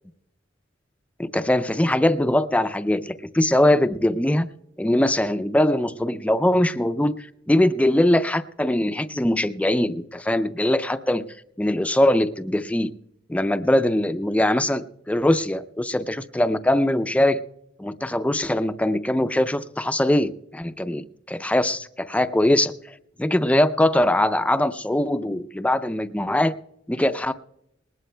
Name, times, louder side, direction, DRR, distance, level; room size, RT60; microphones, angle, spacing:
voice 1, 1.2-4.5 4.8-11.2 11.6-12.9 13.3-17.4 17.8-26.5 26.9-27.3, left 1 dB, 5° left, 12 dB, 0.4 m, -22 dB
20.0 x 19.0 x 2.2 m, 0.80 s
head